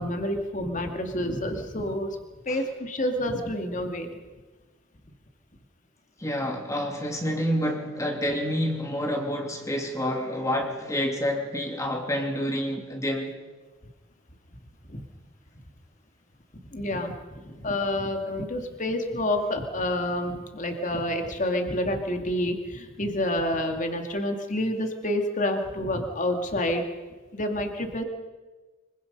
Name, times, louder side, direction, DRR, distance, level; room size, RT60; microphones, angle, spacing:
voice 1, 0.0-2.1 2.5-4.1 14.9-15.0 16.7-26.8 27.3-28.0, left 1 dB, 40° left, 2.4 m, -28 dB
voice 2, 6.2-13.4, equal, 15° left, 2.8 m, -28 dB
25.0 x 24.0 x 5.5 m
head